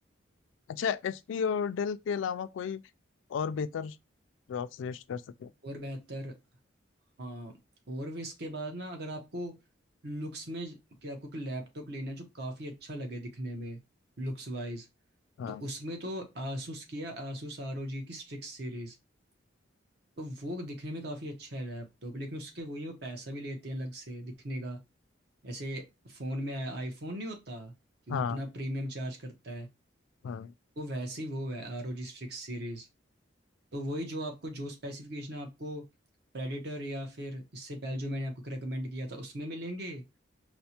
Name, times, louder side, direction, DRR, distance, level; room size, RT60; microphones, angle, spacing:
voice 1, 0.7-2.8 3.3-4.0 4.5-5.5 15.4-15.6 28.1-28.4 30.2-30.5, left 6 dB, 80° left, 0.3 m, -33 dB
voice 2, 5.6-6.4 7.2-7.6 7.9-9.6 10.0-13.8 14.2-14.9 15.5-19.0 20.2-24.8 25.4-27.7 28.1-29.7 30.8-32.9 33.7-35.9 36.3-40.0, equal, 55° right, 0.8 m, -38 dB
4.3 x 2.1 x 2.8 m
head